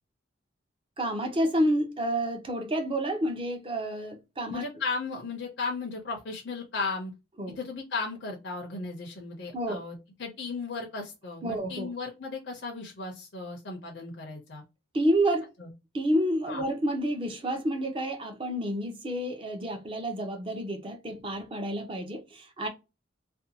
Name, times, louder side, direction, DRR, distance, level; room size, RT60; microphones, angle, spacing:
voice 1, 1.0-4.6 7.4-7.6 9.5-9.8 11.4-11.9 14.9-15.5 15.9-22.7, right 1 dB, 25° right, 0.6 m, -29 dB
voice 2, 4.5-7.1 7.5-14.6 15.6-15.7 16.5-16.6, left 4 dB, 60° left, 0.6 m, -35 dB
2.6 x 2.2 x 2.7 m
head